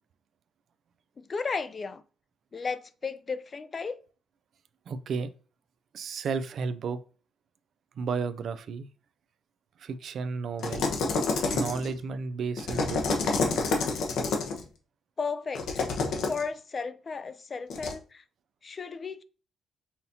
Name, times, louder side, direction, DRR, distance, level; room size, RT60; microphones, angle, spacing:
voice 1, 1.2-2.0 2.5-4.0 15.2-15.7 16.3-18.2 18.6-19.2, left 5 dB, 35° left, 0.3 m, -34 dB
voice 2, 4.9-5.3 5.9-7.0 8.0-8.9 9.8-10.9 11.5-13.2, right 5 dB, 60° right, 0.3 m, -33 dB
sound 1, 10.6-12.0 12.6-14.6 15.6-16.4 17.7-17.9, left 3 dB, 80° left, 0.9 m, -28 dB
5.6 x 2.8 x 2.7 m
cardioid pair, 90°, 0 cm